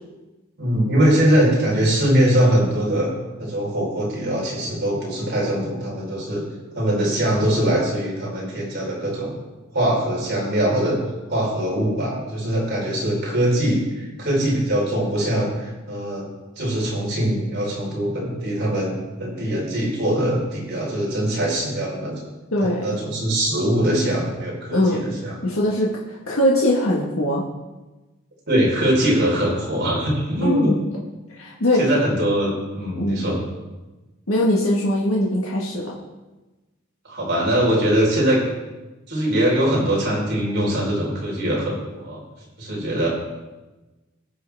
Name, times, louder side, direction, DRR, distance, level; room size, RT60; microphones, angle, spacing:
voice 1, 0.6-3.1 3.4-6.4 6.7-9.3 9.7-11.0 11.3-16.3 16.6-22.3 22.6-25.3 28.5-30.7 31.8-33.4 37.1-38.4 39.1-42.2 42.6-43.1, right 1 dB, 50° right, -4 dB, 4.1 m, -22 dB
voice 2, 22.5-23.0 24.7-25.0 25.4-27.4 30.4-30.7 31.4-31.8 32.9-33.2 34.3-35.9, left 1 dB, 75° left, -3 dB, 1.5 m, -21 dB
19.5 x 6.5 x 3.5 m, 1.1 s
head